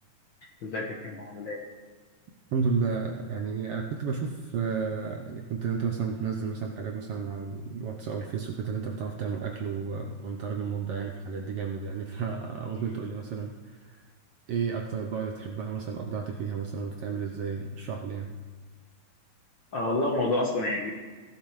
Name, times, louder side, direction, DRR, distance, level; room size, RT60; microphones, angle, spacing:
voice 1, 0.6-1.6 19.7-20.9, left 2 dB, 60° left, -1 dB, 1.3 m, -29 dB
voice 2, 2.5-14.0 14.5-18.3, right 5 dB, 75° right, 2 dB, 1.4 m, -32 dB
16.5 x 11.5 x 3.2 m, 1.4 s
omnidirectional pair, 3.3 m